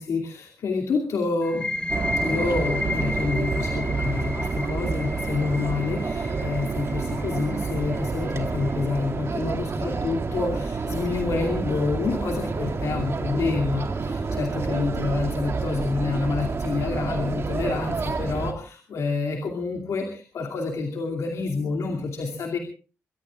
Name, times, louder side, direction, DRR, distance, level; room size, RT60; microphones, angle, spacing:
voice 1, 0.0-1.7 2.2-22.6, left 4 dB, 85° left, 2 dB, 2.6 m, -28 dB
sound 1, 1.4-8.9, left 2 dB, 20° left, 3.8 m, -33 dB
sound 2, 1.9-18.5, right 4 dB, 55° right, 2.3 m, -29 dB
24.0 x 22.5 x 2.5 m, 0.38 s
cardioid pair, 75°, 5 cm